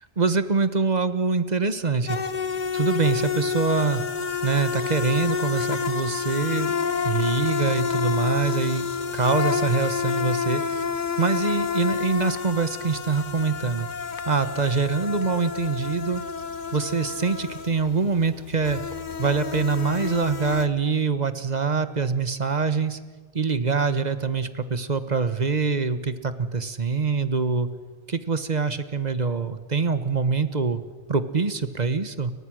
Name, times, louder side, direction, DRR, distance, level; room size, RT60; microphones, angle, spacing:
voice 1, 0.2-2.2 2.7-4.0 4.4-6.7 7.0-8.9 9.1-10.6 11.2-13.9 14.3-16.2 16.7-18.8 19.2-23.0 23.3-27.7 28.1-30.8 31.1-32.3, right 4 dB, 40° right, 11 dB, 1.4 m, -24 dB
sound 1, 2.1-20.7, left 6 dB, 45° left, 1.1 m, -29 dB
30.0 x 23.5 x 6.4 m, 1.3 s
omnidirectional pair, 1.1 m